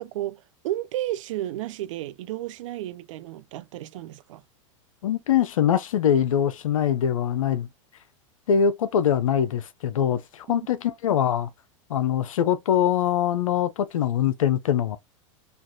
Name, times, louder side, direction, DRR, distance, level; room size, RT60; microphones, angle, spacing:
voice 1, 0.0-4.4 10.5-10.7, right 14 dB, 70° right, 0.4 m, -33 dB
voice 2, 5.0-7.7 8.5-11.5 11.9-15.0, left 9 dB, 85° left, 0.5 m, -23 dB
3.2 x 2.4 x 2.7 m
hypercardioid pair, 105°, 17 cm